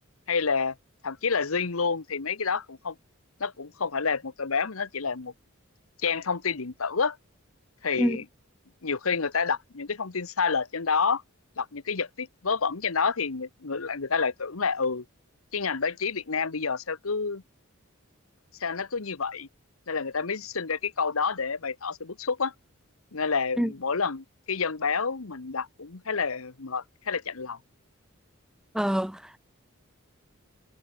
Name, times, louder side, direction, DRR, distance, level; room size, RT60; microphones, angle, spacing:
voice 1, 0.3-0.7 1.0-2.9 3.4-5.3 6.0-7.2 7.8-8.2 8.8-11.2 11.6-15.0 15.5-17.4 18.6-19.5 19.9-22.5 23.1-27.6, left 5 dB, 85° left, 1.2 m, -29 dB
voice 2, 28.7-29.4, equal, 5° right, 0.4 m, -26 dB
head